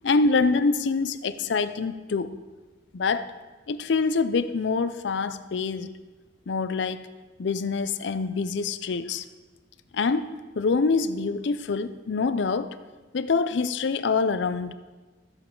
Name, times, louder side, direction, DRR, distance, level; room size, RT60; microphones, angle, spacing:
voice 1, 0.0-2.4 2.9-3.3 3.7-5.9 6.5-7.1 7.4-9.2 9.9-10.3 10.6-12.8 13.1-14.7, left 4 dB, 70° left, 13 dB, 0.5 m, -25 dB
14.5 x 7.2 x 3.8 m, 1.3 s
head